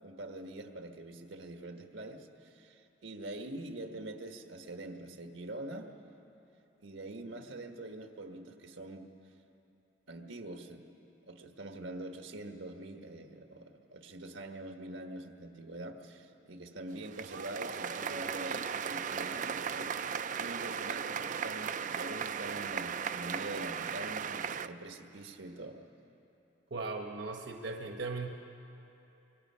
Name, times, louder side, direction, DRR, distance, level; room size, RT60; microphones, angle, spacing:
voice 1, 0.0-5.9 6.8-9.1 10.1-10.9 11.3-19.9 20.4-25.8, right 1 dB, 85° right, 5 dB, 1.5 m, -44 dB
sound 1, 16.9-24.7, right 7 dB, 40° right, 0.4 m, -36 dB
voice 2, 26.7-28.3, right 3 dB, 65° right, 2 dB, 1.1 m, -38 dB
25.0 x 23.5 x 5.7 m, 2.9 s
head